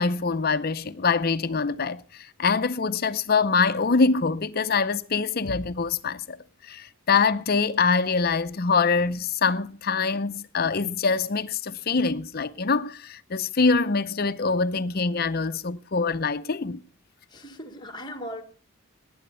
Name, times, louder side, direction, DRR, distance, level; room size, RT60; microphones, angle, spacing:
voice 1, 0.0-2.0 2.4-6.4 6.7-16.8, left 4 dB, 45° left, 0.6 m, -24 dB
voice 2, 17.3-18.4, equal, 20° left, 1.4 m, -38 dB
19.0 x 9.5 x 5.5 m
head